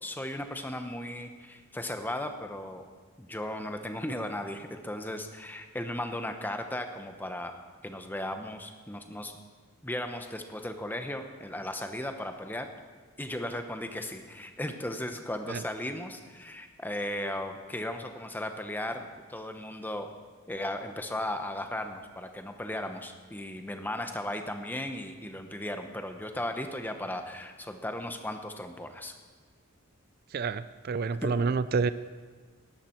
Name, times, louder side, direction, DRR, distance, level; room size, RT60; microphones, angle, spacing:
voice 1, 0.0-2.8 3.2-7.5 7.8-9.3 9.8-12.7 13.2-20.1 20.5-29.1 31.2-31.3, left 1 dB, 10° left, 6 dB, 0.9 m, -36 dB
voice 2, 30.3-31.9, right 4 dB, 45° right, 14 dB, 0.3 m, -28 dB
18.0 x 11.5 x 4.5 m, 1.5 s
head